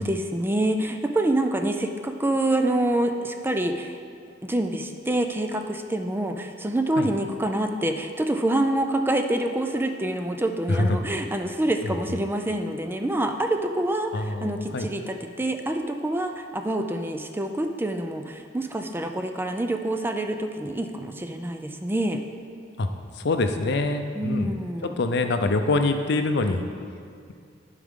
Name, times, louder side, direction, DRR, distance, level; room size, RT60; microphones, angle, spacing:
voice 1, 0.0-4.0 4.4-22.2 24.1-24.9, right 1 dB, 10° right, 5 dB, 0.4 m, -26 dB
voice 2, 10.7-11.0 11.8-12.2 14.1-14.9 22.8-22.9 23.1-24.5 25.0-26.6, left 2 dB, 65° left, 7 dB, 0.5 m, -25 dB
12.0 x 4.9 x 3.7 m, 2.3 s
head